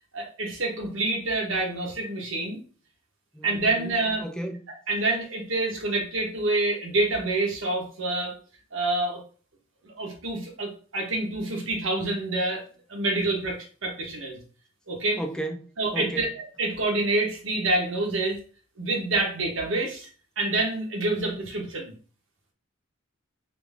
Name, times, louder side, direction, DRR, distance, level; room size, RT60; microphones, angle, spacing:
voice 1, 0.1-2.6 3.4-4.2 4.9-8.3 8.7-9.2 9.8-12.6 12.9-14.4 14.9-15.2 15.8-18.4 18.8-20.1 20.4-21.9, right 2 dB, 70° right, 1.3 m, -27 dB
voice 2, 3.3-3.9 4.2-4.6 15.2-16.3, right 1 dB, 5° left, 0.4 m, -34 dB
4.1 x 2.9 x 3.5 m
head